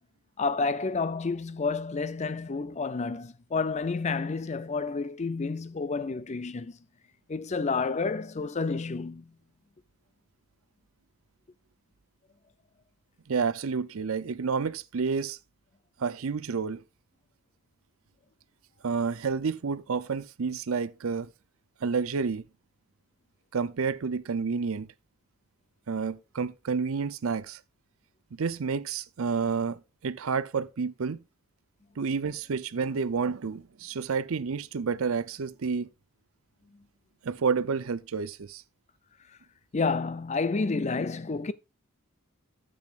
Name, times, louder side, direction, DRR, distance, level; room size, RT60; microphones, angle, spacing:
voice 1, 0.4-6.8 7.3-9.3 39.7-41.5, left 4 dB, 30° left, 0.5 m, -30 dB
voice 2, 13.3-15.4 16.0-16.8 18.8-21.3 21.8-22.4 23.5-24.9 25.9-27.6 28.3-31.2 32.0-35.9 37.2-38.6, right 5 dB, 65° right, 0.5 m, -30 dB
10.5 x 7.9 x 2.4 m
head